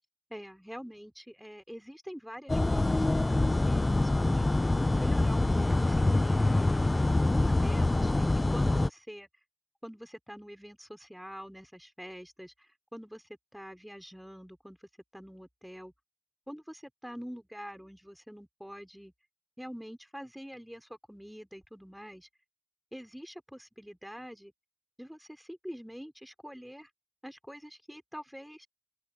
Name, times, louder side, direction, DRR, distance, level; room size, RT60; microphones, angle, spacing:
voice 1, 0.3-4.5 5.0-6.8 7.3-9.3 9.8-15.9 16.5-19.1 19.6-22.3 22.9-24.5 25.0-26.9 27.2-28.7, equal, 5° right, 3.7 m, -45 dB
sound 1, 2.5-8.9, left 2 dB, 55° left, 0.3 m, -25 dB
open air
wide cardioid pair, 45°, 0 cm